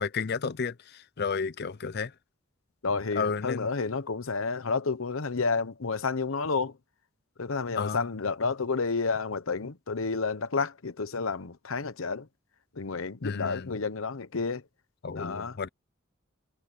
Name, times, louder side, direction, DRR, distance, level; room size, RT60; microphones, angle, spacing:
voice 1, 0.0-2.1 3.2-3.7 7.8-8.1 13.2-13.7 15.0-15.7, left 5 dB, 55° left, 0.6 m, -32 dB
voice 2, 2.8-6.7 7.4-12.3 12.7-14.6 15.1-15.6, left 4 dB, 80° left, 0.9 m, -30 dB
head